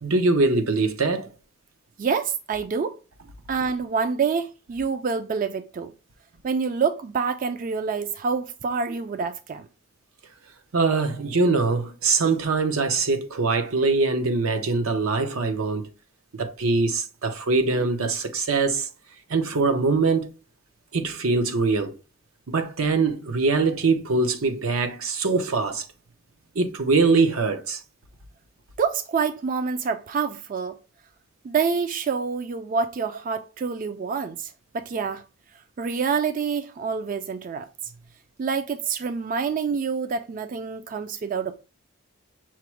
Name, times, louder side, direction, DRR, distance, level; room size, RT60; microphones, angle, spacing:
voice 1, 0.0-1.3 10.7-15.9 16.3-18.9 19.3-20.3 20.9-21.9 22.5-25.9 26.5-27.8, right 3 dB, 85° right, 0.7 m, -23 dB
voice 2, 2.0-3.0 3.5-5.9 6.4-9.7 28.8-30.8 31.4-35.2 35.8-37.7 38.4-41.6, right 5 dB, 40° right, 0.3 m, -27 dB
5.8 x 2.1 x 4.4 m
head